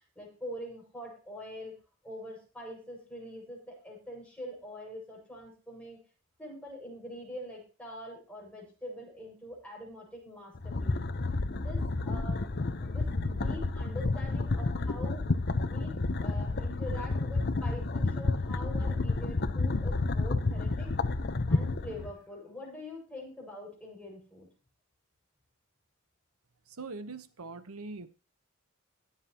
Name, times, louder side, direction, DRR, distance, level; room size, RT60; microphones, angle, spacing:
voice 1, 0.2-1.7 2.0-6.0 6.4-11.0 11.5-15.2 15.7-20.9 21.5-24.5, left 1 dB, 5° left, -1 dB, 6.1 m, -44 dB
sound 1, 10.5-22.1, left 3 dB, 50° left, 0.8 m, -30 dB
voice 2, 26.7-28.1, right 3 dB, 85° right, 11 dB, 1.1 m, -42 dB
21.0 x 7.4 x 2.9 m, 0.35 s
head